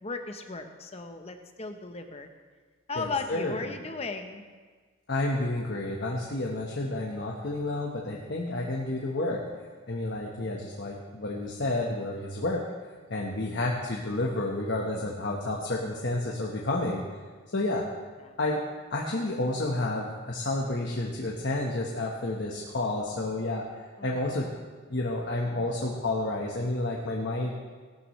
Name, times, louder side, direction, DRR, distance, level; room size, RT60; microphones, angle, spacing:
voice 1, 0.0-2.3 2.9-4.4 18.2-18.3 24.0-24.4, left 3 dB, 30° left, 6 dB, 0.8 m, -36 dB
voice 2, 2.9-3.8 5.1-9.4 9.9-12.6 13.1-17.0 17.5-17.8 18.4-18.6 18.9-23.7 24.0-24.5 24.9-27.5, left 2 dB, 55° left, -2 dB, 1.2 m, -30 dB
17.5 x 12.5 x 3.2 m, 1.5 s
head